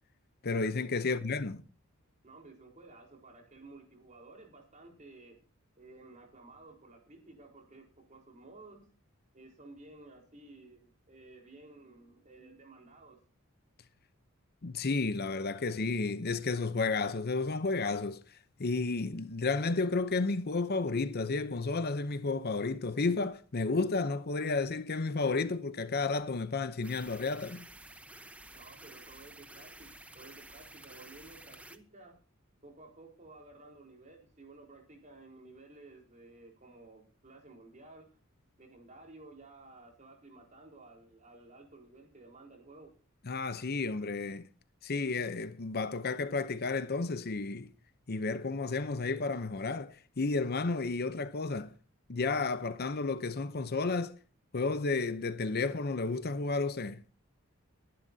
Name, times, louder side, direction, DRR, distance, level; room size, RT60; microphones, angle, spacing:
voice 1, 0.4-1.6 14.6-18.2 18.6-27.7 43.3-44.5 44.8-47.7 48.1-51.7 52.1-54.1 54.5-57.0, left 3 dB, 50° left, 0.7 m, -32 dB
voice 2, 2.2-5.4 5.8-8.9 9.3-13.2 28.5-29.9 30.1-32.2 32.6-38.2 38.6-42.9, right 2 dB, 35° right, 4.3 m, -54 dB
sound 1, 26.8-31.8, right 1 dB, 5° right, 0.9 m, -51 dB
22.0 x 11.0 x 2.8 m
head